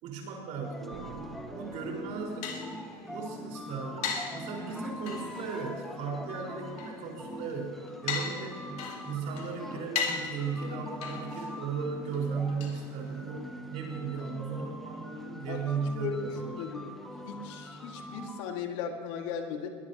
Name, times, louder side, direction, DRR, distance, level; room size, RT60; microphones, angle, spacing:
voice 1, 0.0-2.5 3.1-8.6 9.0-16.6, right 5 dB, 50° right, -1 dB, 4.8 m, -36 dB
sound 1, 0.6-18.5, left 1 dB, ahead, 1.0 m, -43 dB
Slam, 0.9-2.8, right 5 dB, 90° right, 3.5 m, -48 dB
sound 2, 1.8-13.5, left 5 dB, 45° left, 2.5 m, -40 dB
voice 2, 16.0-16.9 17.2-19.7, left 6 dB, 75° left, 3 dB, 2.1 m, -37 dB
22.0 x 18.5 x 3.0 m, 2.2 s
cardioid pair, 160°, 16 cm